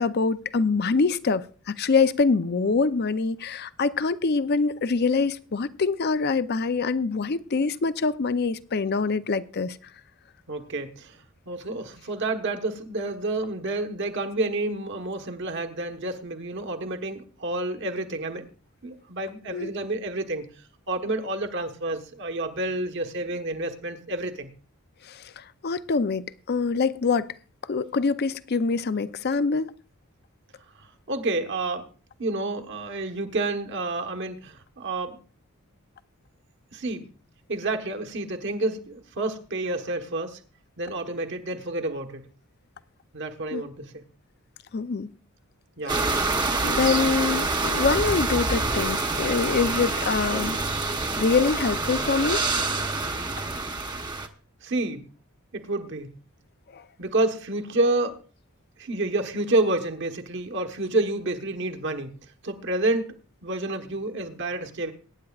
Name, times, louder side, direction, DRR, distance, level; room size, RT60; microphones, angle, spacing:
voice 1, 0.0-9.8 19.5-19.7 25.0-27.3 27.6-29.7 43.5-43.6 44.7-45.1 45.9-46.0 46.6-50.6 51.2-52.4 56.7-56.8, left 4 dB, 45° left, 0.5 m, -25 dB
voice 2, 10.5-18.5 18.8-20.5 20.9-24.5 30.8-31.9 32.2-35.2 36.7-37.1 37.5-40.4 40.8-42.3 43.1-44.0 45.8-46.1 54.6-55.1 55.5-56.1 57.0-58.2 58.8-62.2 62.4-64.9, right 2 dB, 55° right, 1.3 m, -29 dB
sound 1, 45.9-54.3, right 3 dB, 20° right, 0.9 m, -26 dB
23.0 x 9.8 x 2.4 m
head